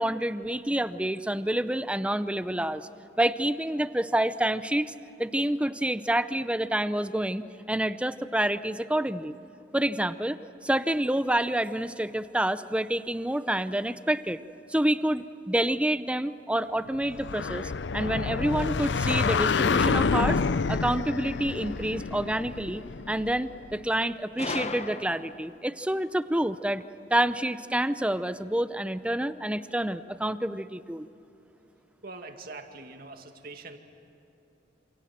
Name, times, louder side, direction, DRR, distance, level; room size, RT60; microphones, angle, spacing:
voice 1, 0.0-2.9 3.2-4.9 5.2-9.3 9.7-14.4 14.7-20.4 20.7-26.8 27.1-31.1, right 1 dB, 5° right, 13 dB, 0.6 m, -28 dB
sound 1, 17.1-23.7, left 4 dB, 65° left, 0.6 m, -28 dB
Gunshot gunfire, 24.4-25.6, left 3 dB, 35° left, 1.0 m, -35 dB
voice 2, 32.0-33.8, right 3 dB, 55° right, 5 dB, 2.2 m, -43 dB
28.0 x 27.5 x 7.5 m, 2.9 s
head